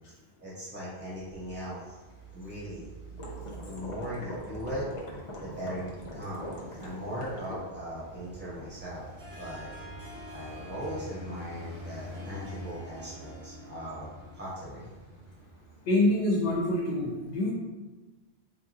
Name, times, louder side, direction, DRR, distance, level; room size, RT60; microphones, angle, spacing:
voice 1, 0.4-1.9 2.3-2.9 3.5-4.9 5.4-6.5 6.8-9.7 10.3-14.9, equal, 10° right, -9 dB, 1.1 m, -39 dB
Traffic noise roadway noise, 1.0-16.5, right 1 dB, 35° right, 0.6 m, -47 dB
sound 1, 3.2-7.6, left 1 dB, 40° left, 0.5 m, -42 dB
Harp, 9.2-14.6, left 1 dB, 75° right, 1.0 m, -49 dB
voice 2, 15.8-17.5, left 1 dB, 85° left, -3 dB, 0.9 m, -26 dB
3.9 x 2.8 x 2.3 m, 1.2 s
omnidirectional pair, 1.1 m